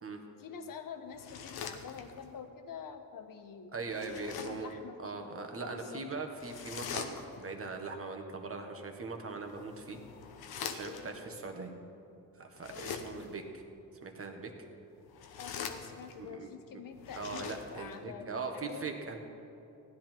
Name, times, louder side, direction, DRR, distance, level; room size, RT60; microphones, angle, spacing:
voice 1, 0.4-5.3 5.6-6.0 10.8-11.1 12.7-13.0 15.4-18.9, left 7 dB, 65° left, 7 dB, 1.2 m, -47 dB
sound 1, 1.1-2.4 3.9-4.7 6.4-7.6 9.4-11.2 12.5-13.4 15.0-16.3 16.9-18.0, left 6 dB, 85° left, 1.0 m, -43 dB
voice 2, 3.7-10.0 10.7-11.7 12.4-13.6 14.0-14.5 16.2-16.5 17.2-19.2, right 3 dB, 40° right, 4 dB, 1.6 m, -40 dB
15.5 x 10.5 x 4.6 m, 2.8 s
cardioid pair, 75°, 36 cm